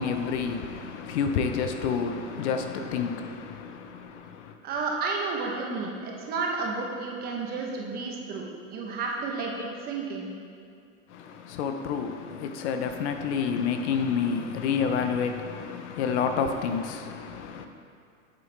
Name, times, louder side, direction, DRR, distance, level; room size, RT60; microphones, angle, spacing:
voice 1, 0.0-4.6 11.1-17.7, left 6 dB, 55° left, 0.7 m, -29 dB
voice 2, 4.6-10.3, right 4 dB, 25° right, 0.8 m, -31 dB
8.7 x 7.3 x 3.3 m
supercardioid pair, 155°, 40 cm